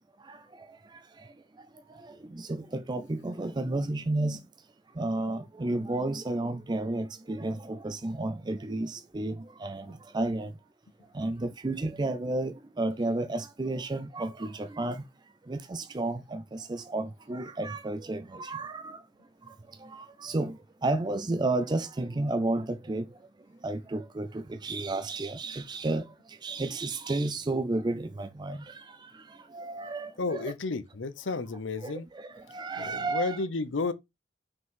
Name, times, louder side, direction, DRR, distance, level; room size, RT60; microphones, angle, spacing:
voice 1, 2.4-4.4 5.0-9.3 9.6-9.8 10.1-10.5 11.2-15.0 15.5-19.0 19.9-20.5 20.8-23.0 23.6-24.3 24.6-26.0 26.4-28.6 29.5-30.5 31.8-31.9 32.5-33.4, right 2 dB, 25° right, 0.4 m, -31 dB
voice 2, 30.2-32.1 32.8-33.9, left 3 dB, 75° left, 0.7 m, -32 dB
5.8 x 5.2 x 3.7 m
head